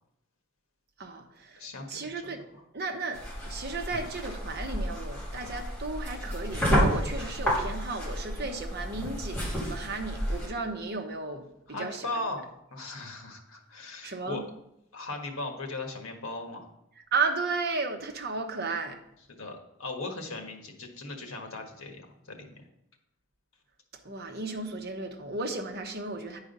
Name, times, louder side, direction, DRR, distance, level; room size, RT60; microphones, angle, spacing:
voice 1, 1.0-2.4 2.7-12.1 14.0-14.4 17.1-19.0 24.0-26.4, right 3 dB, 50° right, 4 dB, 1.0 m, -34 dB
voice 2, 1.6-2.3 11.7-14.4 14.9-16.7 19.3-22.6, left 2 dB, 80° left, 4 dB, 1.5 m, -38 dB
sound 1, 3.1-10.5, equal, 10° left, 2.9 m, -31 dB
9.7 x 4.9 x 5.4 m, 0.81 s
head